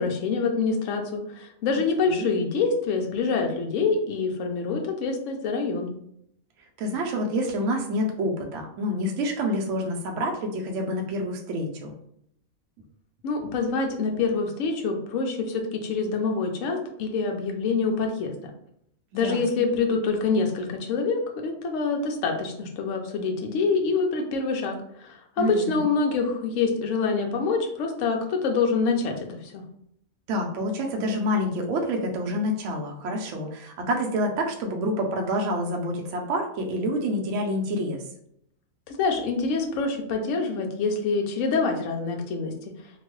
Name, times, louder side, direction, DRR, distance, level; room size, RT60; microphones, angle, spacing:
voice 1, 0.0-5.9 13.2-18.3 19.1-29.6 38.9-42.5, left 4 dB, 70° left, 3 dB, 0.9 m, -26 dB
voice 2, 6.8-11.9 19.2-19.7 25.4-25.9 30.3-38.0, equal, 65° right, 1 dB, 0.9 m, -28 dB
2.9 x 2.2 x 3.1 m, 0.71 s
omnidirectional pair, 1.5 m